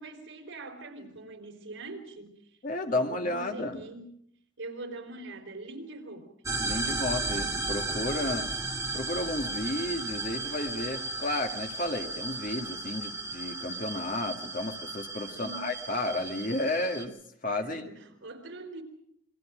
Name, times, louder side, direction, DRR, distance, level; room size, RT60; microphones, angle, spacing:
voice 1, 0.0-2.3 2.9-4.2 4.6-6.3 8.2-8.4 15.3-15.7 17.5-18.8, right 2 dB, 80° right, 4 dB, 4.0 m, -43 dB
voice 2, 2.6-3.8 6.6-8.4 8.9-17.2 17.4-17.9, left 2 dB, 40° left, 4 dB, 2.0 m, -32 dB
sound 1, 6.5-17.1, right 3 dB, 15° right, 1.6 m, -35 dB
27.5 x 22.0 x 5.1 m, 0.68 s
head